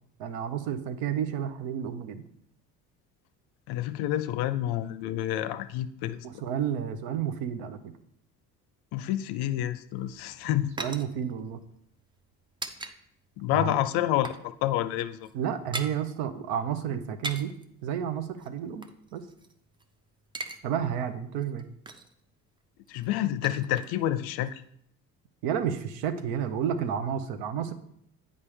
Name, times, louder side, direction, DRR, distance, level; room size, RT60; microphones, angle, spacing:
voice 1, 0.2-2.3 6.2-7.9 10.4-11.6 13.5-13.8 15.3-17.5 17.8-19.2 20.6-21.7 25.4-27.7, right 8 dB, 60° right, 10 dB, 0.8 m, -31 dB
voice 2, 3.7-6.3 8.9-10.7 13.4-14.3 14.6-15.3 22.9-24.6, left 13 dB, 55° left, 13 dB, 0.5 m, -28 dB
sound 1, 10.0-13.0 13.2-13.4 13.8-14.5 14.7-14.9 15.2-16.0 17.0-17.7 18.4-19.8 20.1-20.6 20.9-21.0 21.4-22.2 22.9-24.2 24.4-24.5, right 2 dB, 10° right, 0.4 m, -40 dB
8.3 x 5.2 x 3.3 m, 0.71 s
hypercardioid pair, 60°, 48 cm